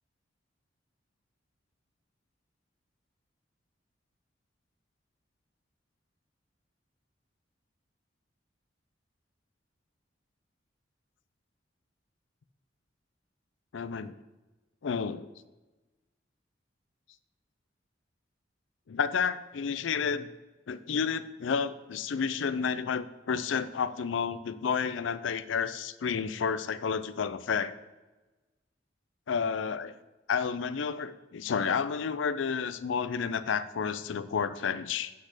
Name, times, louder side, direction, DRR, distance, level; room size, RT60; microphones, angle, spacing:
voice 1, 13.7-14.2 14.8-15.3 18.9-20.3 20.7-27.7 29.3-29.9 30.3-35.1, left 6 dB, 80° left, 14 dB, 0.4 m, -31 dB
8.4 x 4.2 x 6.5 m, 1.2 s
head